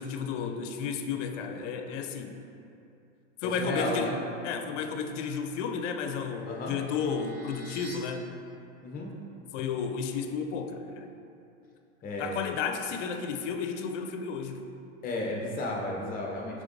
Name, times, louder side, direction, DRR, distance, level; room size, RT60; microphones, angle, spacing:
voice 1, 0.0-2.4 3.4-4.2 4.4-8.3 9.5-11.1 12.2-14.7, left 6 dB, 75° left, 6 dB, 0.5 m, -32 dB
voice 2, 3.6-4.2 6.5-6.7 8.8-9.1 12.0-12.3 15.0-16.6, left 2 dB, 25° left, -1 dB, 0.6 m, -33 dB
sound 1, 5.7-8.0, right 1 dB, 55° right, 1.2 m, -50 dB
4.9 x 3.5 x 2.5 m, 2.6 s
supercardioid pair, 120°, 36 cm